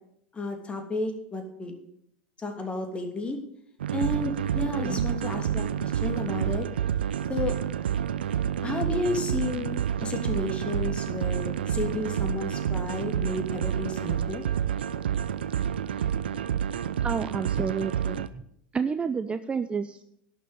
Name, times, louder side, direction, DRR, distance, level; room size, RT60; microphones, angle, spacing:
voice 1, 0.3-1.7 2.4-3.4 3.9-6.7 7.3-7.5 8.6-14.4, left 2 dB, 20° left, 4 dB, 2.9 m, -32 dB
sound 1, 3.8-18.3, right 9 dB, 75° right, 0.6 m, -29 dB
voice 2, 17.0-18.4 18.7-20.0, right 5 dB, 20° right, 11 dB, 0.6 m, -30 dB
11.5 x 6.8 x 9.0 m, 0.72 s
hypercardioid pair, 85°, 6 cm